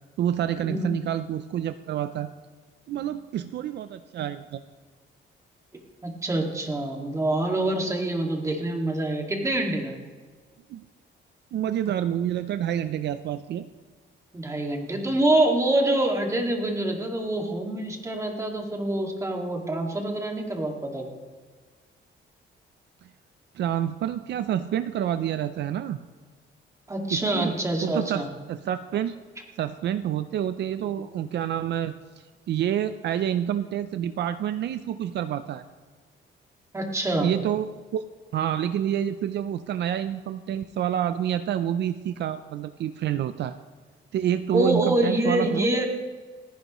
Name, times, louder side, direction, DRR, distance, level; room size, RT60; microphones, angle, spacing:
voice 1, 0.2-2.3 2.9-4.6 10.7-10.8 11.5-13.7 23.5-26.0 27.1-27.6 27.8-29.2 29.6-35.6 37.2-38.0 38.3-43.6 44.1-45.7, right 10 dB, 60° right, 11 dB, 0.5 m, -28 dB
voice 2, 6.0-10.0 14.3-21.1 26.9-28.3 36.7-37.3 44.5-45.9, right 1 dB, 15° right, 1 dB, 2.0 m, -26 dB
29.0 x 10.5 x 3.1 m, 1.5 s
cardioid pair, 170°, 20 cm